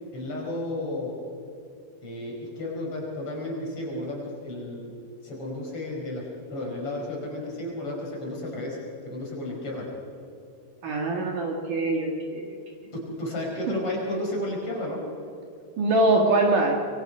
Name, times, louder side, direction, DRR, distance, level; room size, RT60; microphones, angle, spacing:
voice 1, 0.1-1.2 2.0-4.9 5.2-8.8 9.1-9.9 12.9-15.0, left 1 dB, 35° left, -2 dB, 5.5 m, -32 dB
voice 2, 10.8-12.5 15.8-16.8, right 2 dB, 60° right, 1 dB, 3.0 m, -23 dB
25.5 x 23.5 x 5.5 m, 2.5 s
omnidirectional pair, 4.7 m